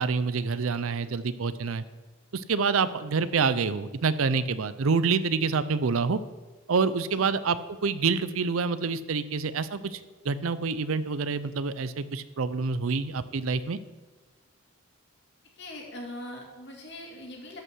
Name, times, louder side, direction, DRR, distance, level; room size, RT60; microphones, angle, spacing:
voice 1, 0.0-1.8 2.3-6.2 6.7-10.0 10.2-13.8, right 5 dB, 75° right, 15 dB, 0.5 m, -27 dB
voice 2, 15.6-17.6, left 1 dB, 55° left, 0 dB, 2.3 m, -41 dB
13.0 x 5.6 x 6.2 m, 1.2 s
head